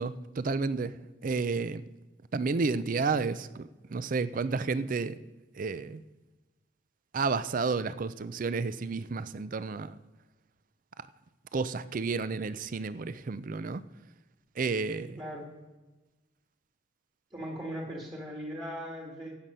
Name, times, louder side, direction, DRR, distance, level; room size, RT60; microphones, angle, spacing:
voice 1, 0.0-1.8 2.3-5.2 5.5-6.0 7.1-10.0 11.0-11.1 11.5-13.8 14.6-15.2, right 4 dB, 45° right, 0.4 m, -31 dB
voice 2, 17.3-19.4, equal, 25° right, 2.0 m, -38 dB
15.5 x 7.6 x 5.6 m
head